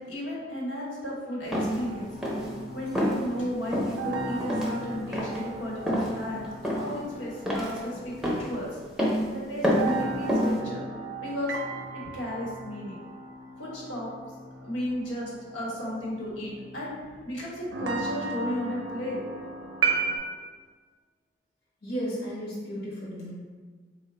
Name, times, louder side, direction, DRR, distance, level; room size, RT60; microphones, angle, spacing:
voice 1, 0.0-6.5 6.8-8.8 9.3-10.8 11.2-11.6 11.9-13.0 13.6-14.1 14.6-19.2, equal, 90° left, -6 dB, 1.1 m, -34 dB
sound 1, 1.5-1.8 2.2-2.5 2.9-3.2 3.7-4.0 4.4-4.7 5.1-5.4 5.9-6.1 6.6-7.0 7.5-7.8 8.2-8.5 9.0-9.2 9.6-10.0 10.3-10.6, equal, 5° right, 0.5 m, -27 dB
sound 2, 1.8-9.0 9.6-17.4 17.7-20.2, right 4 dB, 70° right, 0.5 m, -36 dB
voice 2, 21.8-23.3, equal, 55° left, -7 dB, 0.8 m, -34 dB
3.8 x 2.1 x 3.7 m, 1.5 s
head